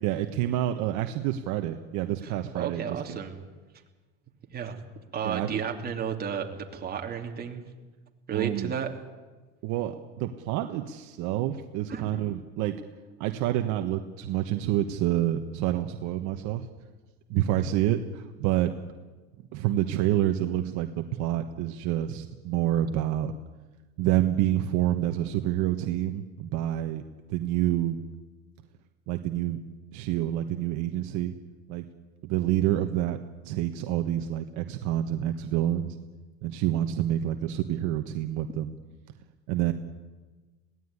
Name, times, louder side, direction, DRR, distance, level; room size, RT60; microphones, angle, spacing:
voice 1, 0.0-3.2 5.2-5.6 8.3-8.7 9.6-12.8 13.2-16.7 17.3-18.7 19.5-23.3 24.0-27.0 27.3-28.0 29.1-29.6 29.9-31.3 31.7-31.9 32.2-33.2 33.4-36.0 36.4-38.7 39.5-39.7, right 12 dB, 60° right, 7 dB, 1.3 m, -28 dB
voice 2, 2.2-3.3 4.5-4.8 5.1-7.6 8.3-8.9 11.9-12.0, right 7 dB, 30° right, 2 dB, 2.9 m, -32 dB
22.0 x 17.0 x 9.7 m, 1.3 s
supercardioid pair, 130°, 33 cm